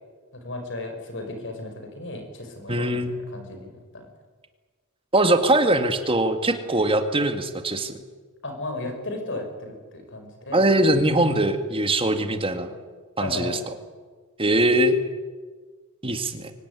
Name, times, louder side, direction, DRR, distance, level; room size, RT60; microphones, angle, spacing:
voice 1, 0.3-4.1 8.4-10.7 13.2-13.7 14.6-14.7, left 2 dB, 55° left, 5 dB, 5.8 m, -35 dB
voice 2, 2.7-3.1 5.1-8.0 10.5-12.7 13.2-13.6 14.4-14.9 16.0-16.5, right 1 dB, 25° right, 7 dB, 2.0 m, -21 dB
24.0 x 18.0 x 9.9 m, 1.4 s
head